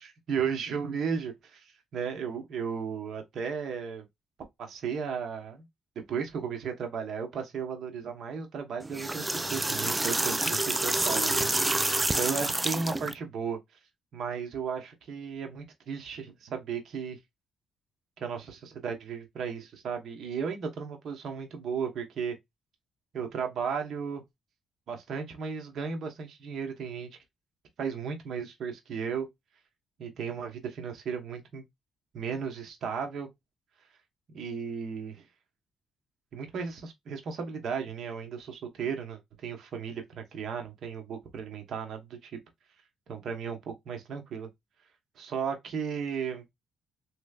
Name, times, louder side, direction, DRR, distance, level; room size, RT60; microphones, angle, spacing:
voice 1, 0.0-4.1 4.6-5.6 5.9-13.6 14.1-17.2 18.2-22.3 23.1-24.2 24.9-27.1 27.8-29.3 30.0-31.6 32.1-33.3 34.3-35.2 36.3-42.4 43.1-44.5 45.2-46.4, right 6 dB, 65° right, 1.1 m, -35 dB
sound 1, 8.8-13.1, right 2 dB, 15° right, 0.4 m, -28 dB
3.2 x 3.1 x 2.3 m
cardioid pair, 90°, 0 cm